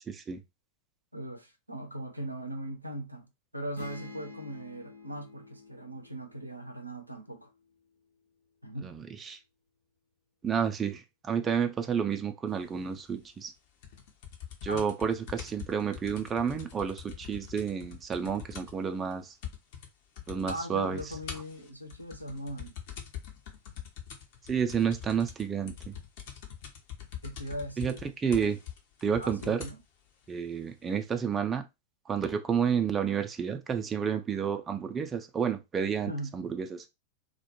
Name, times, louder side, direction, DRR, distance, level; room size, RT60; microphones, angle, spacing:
voice 1, 0.1-0.4 8.8-9.4 10.4-13.5 14.6-19.3 20.3-21.0 24.5-25.9 27.8-27.9 28.2-28.6 29.0-29.6 30.3-31.6 32.1-36.9, right 7 dB, 20° right, 0.3 m, -30 dB
voice 2, 1.1-7.5 8.6-8.9 14.7-14.8 20.5-22.7 27.2-28.0 29.2-29.8 36.1-36.3, right 1 dB, 85° right, 0.5 m, -39 dB
sound 1, 3.7-7.5, left 3 dB, 85° left, 0.8 m, -49 dB
sound 2, 13.8-18.9 19.1-19.2 19.4-19.9 20.2-20.6 21.0-29.8 30.6-30.7, left 9 dB, 50° left, 0.6 m, -44 dB
2.2 x 2.1 x 2.9 m
figure-of-eight pair, 90°, 0 cm